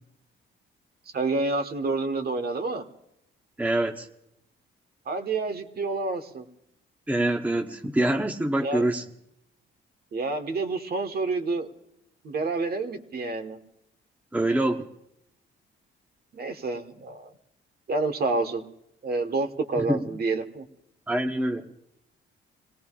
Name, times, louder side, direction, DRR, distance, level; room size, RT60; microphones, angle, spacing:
voice 1, 1.1-2.8 5.1-6.5 8.6-8.9 10.1-11.7 12.2-13.6 16.3-17.3 17.9-18.6 19.0-20.6, right 3 dB, 50° right, 6 dB, 1.4 m, -28 dB
voice 2, 3.6-4.1 7.1-9.0 14.3-14.9 19.8-20.0 21.1-21.7, right 1 dB, 5° right, 3 dB, 0.9 m, -25 dB
26.0 x 18.0 x 2.4 m, 0.82 s
cardioid pair, 90°, 20 cm